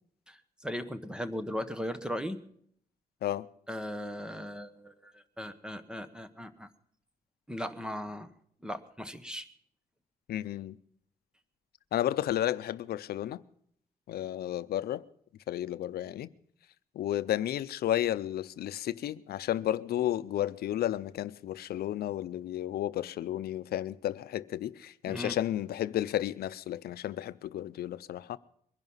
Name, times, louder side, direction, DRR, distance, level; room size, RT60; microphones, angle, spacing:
voice 1, 0.3-2.4 3.7-6.7 7.5-8.3 8.6-9.5 25.1-25.4, equal, 5° right, 1.1 m, -38 dB
voice 2, 10.3-10.8 11.9-13.4 14.1-15.0 15.5-16.3 16.9-28.4, left 12 dB, 90° left, 0.6 m, -32 dB
22.5 x 11.0 x 5.6 m
cardioid pair, 130°, 16 cm